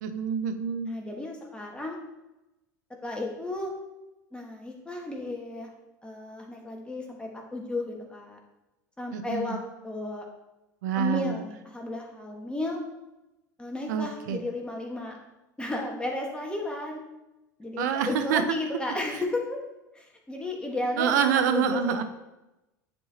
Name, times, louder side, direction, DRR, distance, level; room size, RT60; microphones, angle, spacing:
voice 1, 0.0-0.9 9.1-9.6 10.8-11.4 13.9-14.4 17.8-18.4 21.0-22.0, right 8 dB, 70° right, 9 dB, 0.8 m, -26 dB
voice 2, 0.8-2.0 3.0-3.7 4.3-5.7 6.0-8.4 9.0-10.2 10.9-12.8 13.6-15.2 15.6-17.0 17.6-19.6 19.9-22.0, left 2 dB, 10° left, 0 dB, 1.5 m, -33 dB
9.7 x 4.5 x 2.9 m, 0.98 s
hypercardioid pair, 85°, 10 cm